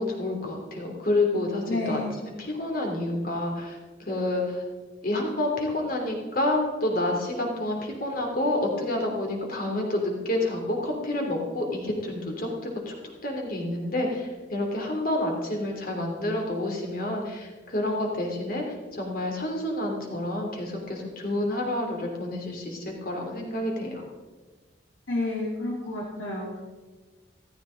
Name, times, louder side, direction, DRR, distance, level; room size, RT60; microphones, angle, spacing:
voice 1, 0.0-2.0 2.4-4.6 5.0-12.9 13.2-24.0, left 1 dB, 50° left, 1 dB, 2.9 m, -29 dB
voice 2, 1.7-2.2 25.1-26.6, left 2 dB, 90° left, -4 dB, 2.2 m, -30 dB
14.5 x 14.5 x 3.9 m, 1.3 s
head